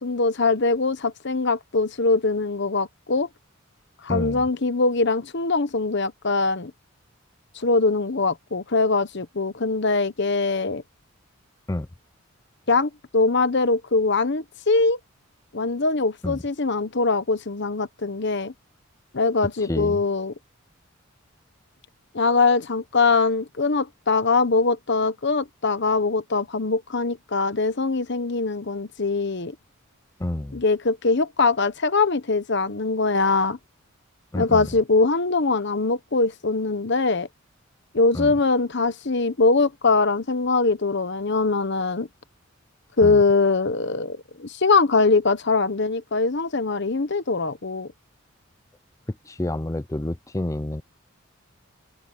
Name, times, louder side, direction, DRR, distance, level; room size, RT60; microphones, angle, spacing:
voice 1, 0.0-3.3 4.0-6.7 7.5-10.8 12.7-15.0 15.5-18.5 19.1-20.3 22.1-29.5 30.5-33.6 34.3-37.3 37.9-42.1 43.0-47.9, left 3 dB, 55° left, 1.1 m, -22 dB
voice 2, 4.1-4.4 11.7-11.9 16.2-16.4 19.6-20.0 30.2-30.6 34.3-34.7 38.1-38.4 43.0-43.2 49.1-50.8, left 1 dB, 15° left, 0.5 m, -29 dB
head